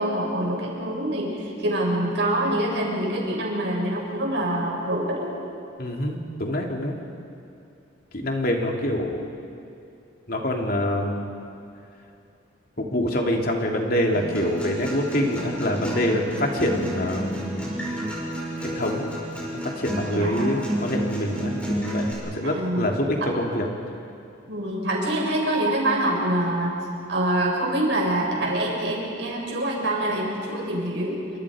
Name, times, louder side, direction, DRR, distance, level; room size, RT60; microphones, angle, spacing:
voice 1, 0.0-5.3 20.1-20.5 22.4-22.9 23.2-23.3 24.4-26.8 27.1-31.2, right 1 dB, 70° right, -2 dB, 6.2 m, -25 dB
voice 2, 5.8-7.0 8.1-9.2 10.3-11.3 12.8-17.8 18.6-19.1 19.6-23.7, left 1 dB, 50° left, 1 dB, 2.9 m, -25 dB
Acoustic guitar, 14.1-22.1, right 1 dB, 5° left, 6.6 m, -31 dB
28.5 x 26.0 x 5.1 m, 2.6 s
head